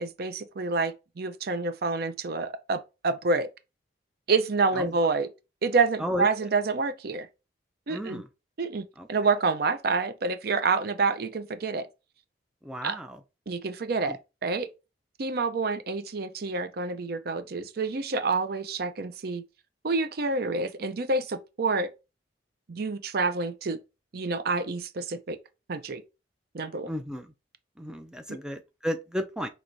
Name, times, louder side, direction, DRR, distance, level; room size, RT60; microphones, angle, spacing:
voice 1, 0.0-3.5 4.3-5.3 5.6-7.3 7.9-8.2 8.6-11.9 12.8-12.9 13.5-14.7 15.2-19.4 19.8-21.9 22.7-23.8 24.1-25.4 25.7-26.0 26.5-26.9, right 4 dB, 55° right, 0.5 m, -28 dB
voice 2, 7.9-8.3 9.0-9.1 12.6-13.2 14.0-14.2 26.8-27.3 27.8-29.5, equal, 5° right, 0.4 m, -33 dB
6.0 x 2.9 x 2.6 m
head